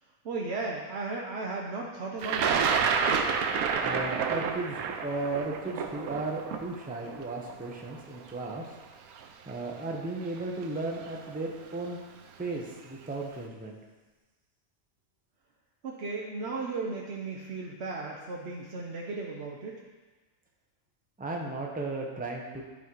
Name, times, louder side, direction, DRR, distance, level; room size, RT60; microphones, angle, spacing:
voice 1, 0.2-2.7 15.8-19.8, right 3 dB, 55° right, -2 dB, 1.0 m, -35 dB
Thunder, 2.2-8.2 9.2-9.3 10.4-10.6 10.9-11.4, right 6 dB, 80° right, 1.1 m, -29 dB
voice 2, 3.8-8.6 9.5-12.0 12.4-13.8 21.2-22.6, right 2 dB, 5° right, -1 dB, 0.8 m, -35 dB
11.5 x 4.3 x 4.6 m, 1.3 s
omnidirectional pair, 1.5 m